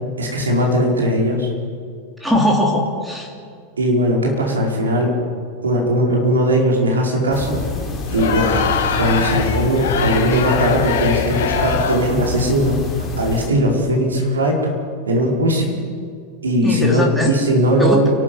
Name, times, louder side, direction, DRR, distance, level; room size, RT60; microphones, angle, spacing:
voice 1, 0.2-1.5 3.8-5.2 5.6-7.6 8.1-8.6 9.0-12.8 13.2-14.6 15.1-15.8 16.4-18.1, equal, 70° right, -1 dB, 5.0 m, -18 dB
voice 2, 2.2-3.3 16.6-17.3 17.8-18.1, left 1 dB, ahead, -1 dB, 3.2 m, -19 dB
sound 1, 7.3-13.5, left 2 dB, 15° left, 4.0 m, -27 dB
Crowd, 8.0-12.2, left 7 dB, 55° left, 2.1 m, -23 dB
29.0 x 12.5 x 8.4 m, 2.2 s
figure-of-eight pair, 90°, 0 cm